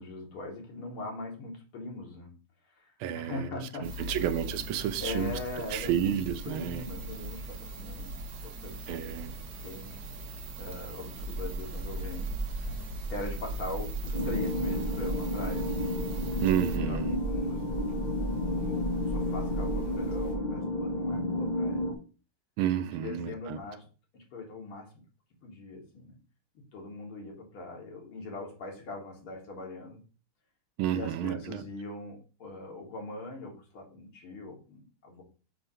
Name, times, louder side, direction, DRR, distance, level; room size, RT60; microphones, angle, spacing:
voice 1, 0.0-2.3 2.7-4.2 5.0-6.2 6.4-8.2 8.4-9.2 9.5-10.0 10.6-15.7 16.8-17.9 18.5-21.8 22.9-23.9 24.1-24.9 25.4-26.2 26.7-30.0 30.9-35.2, left 2 dB, 80° left, 2.6 m, -41 dB
voice 2, 3.0-3.5 3.8-5.4 5.7-6.8 8.9-9.3 16.4-17.2 22.6-23.6 30.8-31.6, right 11 dB, 80° right, 1.4 m, -31 dB
sound 1, 3.8-16.8, right 1 dB, 55° right, 1.2 m, -41 dB
sound 2, 11.2-20.3, right 3 dB, 60° left, 2.8 m, -36 dB
sound 3, 14.1-21.9, left 1 dB, 30° left, 0.9 m, -32 dB
6.8 x 2.7 x 5.5 m
omnidirectional pair, 2.3 m